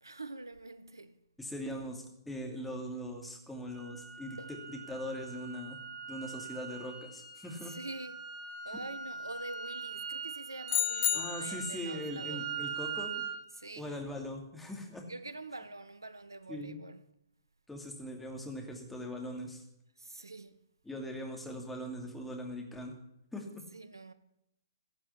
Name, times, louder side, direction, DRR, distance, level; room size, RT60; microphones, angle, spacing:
voice 1, 0.0-1.2 4.4-4.5 7.6-8.3 8.6-12.5 13.5-14.0 15.1-17.0 20.0-20.6 23.7-24.1, right 2 dB, 80° right, 1.0 m, -45 dB
voice 2, 1.4-5.8 6.1-7.7 11.1-13.1 13.8-15.0 16.5-16.8 17.7-19.6 20.9-23.0 23.3-23.5, equal, 5° left, 2.6 m, -41 dB
sound 1, 3.7-13.4, right 6 dB, 20° right, 1.9 m, -42 dB
sound 2, 10.7-11.8, left 12 dB, 40° left, 0.5 m, -31 dB
16.0 x 7.6 x 9.7 m
figure-of-eight pair, 125°, 2 cm